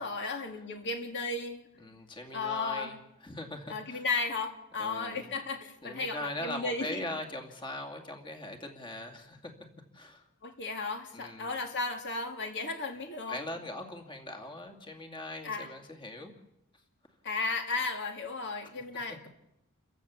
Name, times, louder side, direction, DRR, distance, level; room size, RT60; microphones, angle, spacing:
voice 1, 0.0-1.6 2.3-2.9 3.7-7.0 10.4-13.4 15.4-15.7 17.2-19.3, left 3 dB, 55° left, 2.3 m, -34 dB
voice 2, 1.8-3.0 3.2-4.0 4.8-5.3 5.8-9.5 9.9-10.2 11.1-11.6 13.3-16.3 19.1-19.2, left 1 dB, 20° left, 2.4 m, -41 dB
29.0 x 15.5 x 7.1 m
head